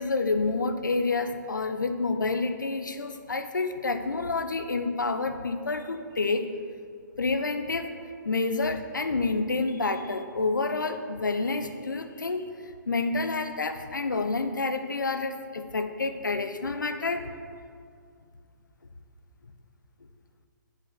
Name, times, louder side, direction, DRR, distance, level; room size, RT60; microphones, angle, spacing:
voice 1, 0.0-6.5 7.2-7.9 8.2-17.3, left 3 dB, 75° left, 8 dB, 0.8 m, -28 dB
7.4 x 6.3 x 6.7 m, 2.2 s
figure-of-eight pair, 125°, 10 cm